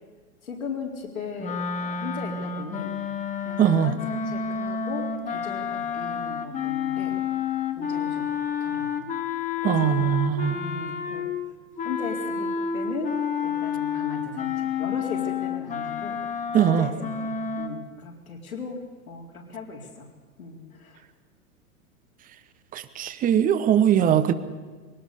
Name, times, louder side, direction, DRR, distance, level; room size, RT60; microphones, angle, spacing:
voice 1, 0.4-3.0 3.4-7.2 7.8-8.3 8.6-9.1 9.6-10.0 10.5-11.3 11.8-13.2 13.4-16.2 16.5-20.1 20.4-21.0, left 4 dB, 75° left, 0 dB, 4.2 m, -37 dB
sound 1, 1.4-11.4 11.8-17.7, left 7 dB, 15° left, 1.4 m, -30 dB
voice 2, 3.6-3.9 9.6-10.6 16.5-16.9 22.7-24.3, right 9 dB, 20° right, 13 dB, 1.0 m, -21 dB
22.0 x 18.0 x 6.9 m, 1.4 s
figure-of-eight pair, 100°, 43 cm